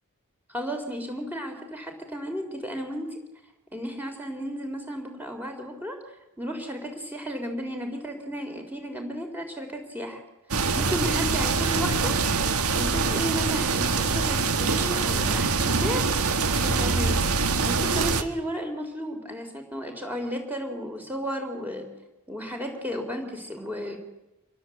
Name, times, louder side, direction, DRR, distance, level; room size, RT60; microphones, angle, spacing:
voice 1, 0.5-3.2 3.7-6.0 6.4-10.2 10.7-12.2 12.7-17.2 17.6-21.9 22.3-24.0, equal, 10° right, 3 dB, 4.0 m, -33 dB
sound 1, 10.5-18.2, right 4 dB, 75° right, 1.7 m, -24 dB
26.5 x 21.5 x 8.0 m, 0.94 s
head